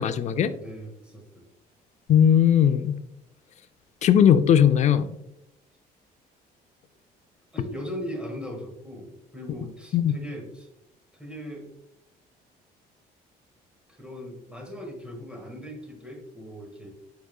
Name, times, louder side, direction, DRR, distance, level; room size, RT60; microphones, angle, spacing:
voice 1, 0.0-0.5 2.1-2.9 4.0-5.1 9.9-10.1, left 9 dB, 45° left, 11 dB, 0.4 m, -18 dB
voice 2, 0.5-1.4 7.5-10.7 11.2-11.7 13.9-16.9, equal, 5° right, 1 dB, 1.3 m, -39 dB
4.9 x 4.6 x 2.3 m, 0.85 s
cardioid pair, 110°, 17 cm